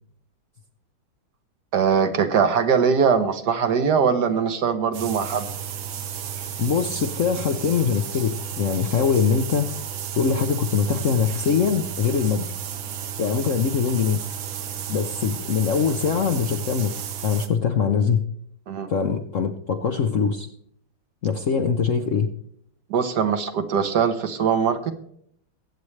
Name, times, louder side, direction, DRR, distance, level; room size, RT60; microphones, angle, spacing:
voice 1, 1.7-5.5 18.7-18.9 22.9-24.9, right 6 dB, 60° right, 8 dB, 1.4 m, -21 dB
sound 1, 4.9-17.5, right 9 dB, 85° right, 1.9 m, -33 dB
voice 2, 6.6-9.7 10.1-12.5 13.0-14.2 14.9-18.2 18.9-20.5 21.2-22.3, left 6 dB, 60° left, 6 dB, 0.8 m, -23 dB
22.0 x 8.3 x 3.2 m, 0.69 s
omnidirectional pair, 2.2 m